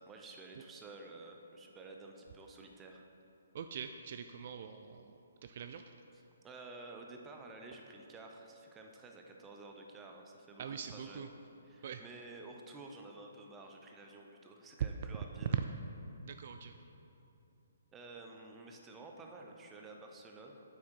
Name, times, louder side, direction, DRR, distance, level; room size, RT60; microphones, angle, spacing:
voice 1, 0.0-3.0 6.4-11.2 11.7-15.5 17.9-20.7, right 3 dB, 15° right, 2 dB, 0.7 m, -51 dB
voice 2, 3.5-5.9 10.6-11.3 11.8-12.0 15.5-15.7 16.2-16.8, right 7 dB, 50° right, 7 dB, 0.3 m, -41 dB
7.7 x 6.2 x 4.5 m, 2.9 s
hypercardioid pair, 155°, 0 cm